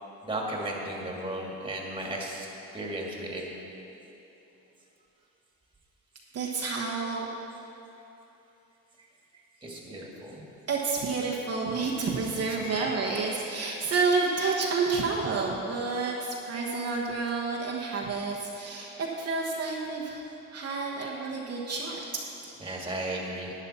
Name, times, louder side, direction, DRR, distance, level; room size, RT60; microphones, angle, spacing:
voice 1, 0.2-2.5 2.7-3.4 9.6-10.4 12.5-12.8 22.6-23.5, right 1 dB, 15° right, -2 dB, 2.1 m, -35 dB
voice 2, 6.3-7.3 10.7-20.2 20.5-22.6, right 4 dB, 55° right, -2 dB, 1.2 m, -30 dB
11.5 x 9.5 x 4.3 m, 2.9 s
cardioid pair, 90°, 30 cm